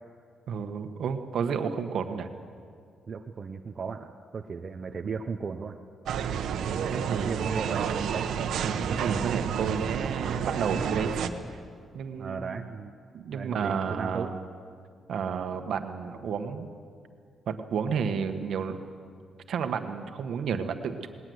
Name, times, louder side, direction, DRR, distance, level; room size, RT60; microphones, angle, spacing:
voice 1, 0.5-2.3 6.6-7.4 8.6-11.6 11.9-12.6 13.1-14.4 15.1-16.7 17.5-18.8 19.5-21.1, right 6 dB, 65° right, 7 dB, 1.5 m, -31 dB
voice 2, 3.1-5.8 7.2-7.9 12.2-12.9 13.3-14.3, right 5 dB, 35° right, 4 dB, 0.8 m, -36 dB
sound 1, 6.1-11.3, right 7 dB, 80° right, 1.1 m, -30 dB
19.5 x 19.5 x 8.0 m, 2.2 s
cardioid pair, 155°, 0 cm